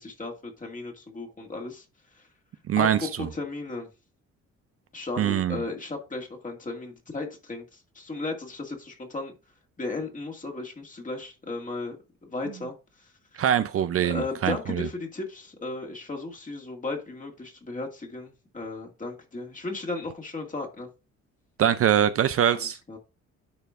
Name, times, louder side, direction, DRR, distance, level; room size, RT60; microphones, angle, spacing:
voice 1, 0.0-1.8 2.8-3.9 4.9-9.3 9.8-12.0 12.2-12.8 14.0-20.9 22.5-23.0, left 3 dB, 25° left, 2.1 m, -35 dB
voice 2, 2.7-3.3 5.2-5.6 13.4-14.9 21.6-22.8, right 10 dB, 50° right, 0.5 m, -23 dB
10.0 x 4.4 x 2.5 m
cardioid pair, 90°, 30 cm